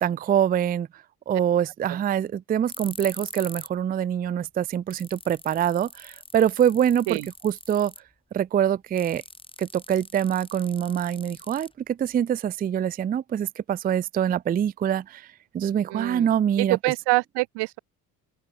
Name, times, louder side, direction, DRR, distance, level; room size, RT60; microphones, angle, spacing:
voice 1, 0.0-0.9 1.3-7.2 7.4-7.9 8.3-9.2 9.6-15.2 15.5-16.8, right 9 dB, 25° right, 0.4 m, -24 dB
sound 1, 2.7-3.8 4.1-4.2 4.6-4.7 4.9-8.1 9.0-12.1, left 2 dB, 15° left, 3.1 m, -43 dB
voice 2, 15.9-17.8, right 23 dB, 80° right, 0.9 m, -26 dB
open air
supercardioid pair, 80°, 40 cm